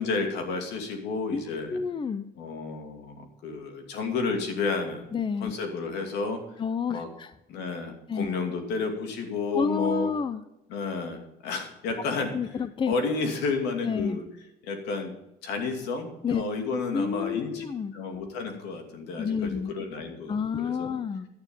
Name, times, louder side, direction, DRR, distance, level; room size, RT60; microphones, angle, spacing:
voice 1, 0.0-1.8 2.4-5.1 5.4-6.4 6.9-7.1 7.5-10.1 10.7-12.3 12.9-14.2 14.6-15.2 15.4-17.6 17.9-20.9, left 4 dB, 85° left, 4 dB, 2.7 m, -31 dB
voice 2, 1.7-2.3 5.1-5.5 6.6-7.3 8.1-8.3 9.5-10.4 12.3-12.9 13.8-14.2 16.2-16.4 16.9-17.9 19.2-19.7 20.3-21.3, left 6 dB, 30° left, 14 dB, 0.6 m, -29 dB
11.0 x 9.7 x 5.4 m, 0.89 s
cardioid pair, 110°, 17 cm